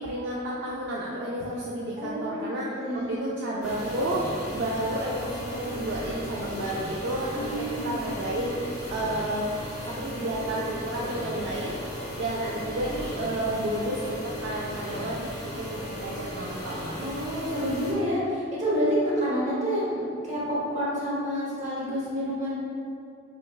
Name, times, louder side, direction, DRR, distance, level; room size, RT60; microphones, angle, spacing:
voice 1, 0.0-9.6 9.9-16.9, right 1 dB, 60° right, -5 dB, 0.3 m, -31 dB
voice 2, 2.0-3.2 7.3-8.0 17.0-22.6, equal, 40° right, -8 dB, 1.0 m, -28 dB
sound 1, 3.6-17.9, equal, 40° left, 0.9 m, -36 dB
5.1 x 2.2 x 2.3 m, 2.4 s
head